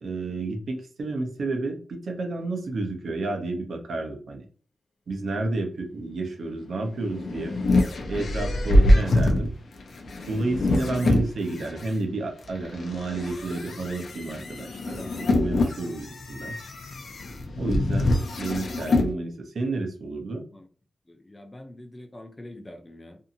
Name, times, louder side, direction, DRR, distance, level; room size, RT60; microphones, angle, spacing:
voice 1, 0.0-4.4 5.1-7.6 8.1-9.5 10.3-16.6 17.6-20.4, right 2 dB, 80° right, 3 dB, 0.7 m, -31 dB
sound 1, 6.9-11.9 12.5-19.1, left 1 dB, 75° left, 0.5 m, -25 dB
voice 2, 21.1-23.2, left 1 dB, 20° left, 4 dB, 0.5 m, -44 dB
2.6 x 2.6 x 2.6 m, 0.42 s
wide cardioid pair, 135°, 0 cm